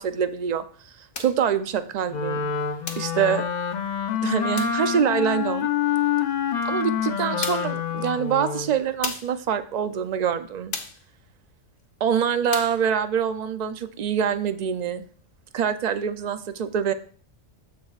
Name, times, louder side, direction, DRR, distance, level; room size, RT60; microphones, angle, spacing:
voice 1, 0.0-2.4 3.0-3.5 4.2-5.7 6.6-10.8 12.0-15.1 15.5-16.9, right 8 dB, 70° right, 10 dB, 0.4 m, -25 dB
sound 1, 1.1-1.4 2.9-3.2 4.6-4.8 6.6-6.7 7.4-7.8 9.0-9.4 10.7-11.1 12.5-12.8, left 5 dB, 75° left, 1.3 m, -34 dB
Wind instrument woodwind instrument, 2.1-8.8, left 7 dB, 55° left, 0.5 m, -26 dB
13.5 x 5.1 x 2.4 m, 0.44 s
omnidirectional pair, 1.3 m